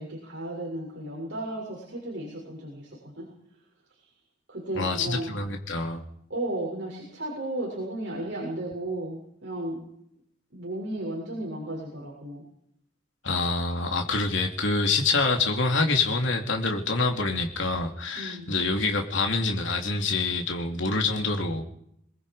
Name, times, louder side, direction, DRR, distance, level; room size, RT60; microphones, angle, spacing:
voice 1, 0.0-3.3 4.0-4.1 4.5-5.3 6.3-9.8 10.5-12.4 18.2-18.5, right 1 dB, 60° right, -3 dB, 7.2 m, -34 dB
voice 2, 4.7-6.0 13.2-21.6, left 3 dB, 70° left, 3 dB, 2.9 m, -26 dB
25.5 x 22.0 x 5.1 m, 0.71 s
head